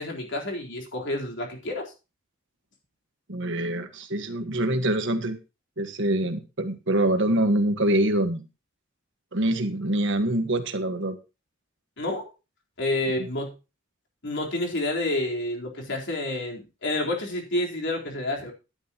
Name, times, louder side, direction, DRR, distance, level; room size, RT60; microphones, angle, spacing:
voice 1, 0.0-1.9 12.0-12.3 12.8-13.5 14.2-18.5, left 1 dB, 60° left, 1 dB, 3.9 m, -29 dB
voice 2, 3.3-5.4 5.8-8.4 9.3-11.2 13.2-13.3, right 1 dB, 65° right, 8 dB, 1.5 m, -25 dB
13.0 x 11.0 x 2.9 m, 0.30 s
head